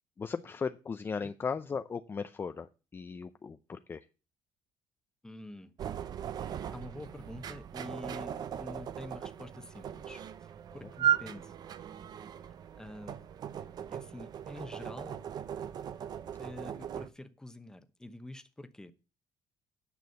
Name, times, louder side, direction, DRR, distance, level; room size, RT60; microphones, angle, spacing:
voice 1, 0.2-4.1, left 5 dB, 25° left, 10 dB, 0.5 m, -37 dB
voice 2, 5.2-5.9 6.7-11.5 12.4-13.2 13.9-15.2 16.4-18.9, left 1 dB, 5° left, 10 dB, 1.0 m, -47 dB
sound 1, 5.8-17.1, right 9 dB, 50° right, 0.7 m, -37 dB
9.4 x 6.1 x 6.9 m, 0.32 s
cardioid pair, 115°, 9 cm